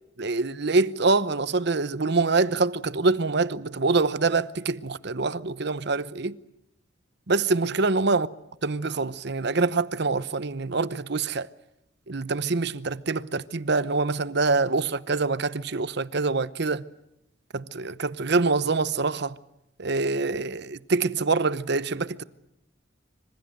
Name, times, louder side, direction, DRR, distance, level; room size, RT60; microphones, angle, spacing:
voice 1, 0.2-6.4 7.3-8.3 8.6-11.5 12.1-16.8 17.5-19.4 19.8-22.2, right 3 dB, 60° right, 0.9 m, -25 dB
26.0 x 26.0 x 7.8 m
head